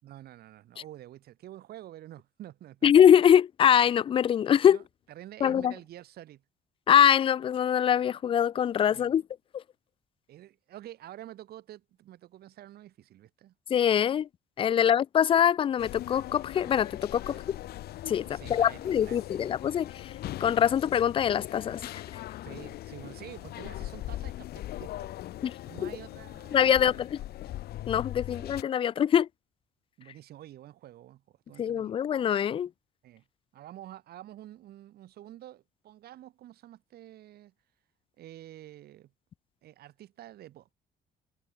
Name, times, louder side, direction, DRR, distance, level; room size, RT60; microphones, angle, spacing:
voice 1, 0.0-2.9 4.6-6.4 8.9-9.2 10.3-13.5 14.7-14.9 17.3-17.4 18.2-19.4 22.4-25.1 25.6-27.1 27.4-27.5 28.3-28.5 30.0-32.0 33.0-33.2 33.5-37.5 38.2-39.1 39.6-40.7, right 13 dB, 70° right, 4.6 m, -48 dB
voice 2, 2.8-4.8 5.4-5.7 6.9-9.2 13.7-14.3 14.6-17.6 18.1-20.1 20.4-21.9 25.4-25.5 25.8-25.9 26.5-26.9 27.9-29.3 31.6-32.7, left 9 dB, 30° left, 0.3 m, -23 dB
sound 1, 15.8-28.6, left 14 dB, 70° left, 1.5 m, -40 dB
cardioid pair, 110°, 17 cm